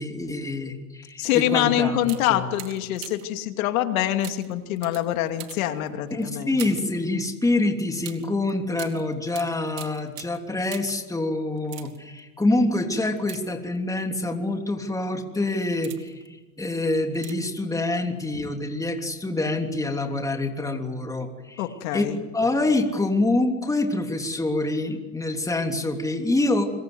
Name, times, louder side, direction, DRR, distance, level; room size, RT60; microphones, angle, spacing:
voice 1, 0.0-2.0 2.3-2.5 6.1-21.6 21.9-22.0 22.3-26.7, left 2 dB, 10° left, 3 dB, 3.2 m, -26 dB
voice 2, 1.2-6.6 21.6-22.2, left 12 dB, 85° left, 6 dB, 2.7 m, -25 dB
sound 1, 1.5-1.6 2.0-3.4 4.2-7.0 8.0-11.1 11.6-12.2 13.2-14.0 14.7-14.9 15.5-16.3 17.1-17.6 17.9-18.0, right 16 dB, 75° right, 3.0 m, -43 dB
27.0 x 23.0 x 8.0 m, 1.2 s
supercardioid pair, 110°, 41 cm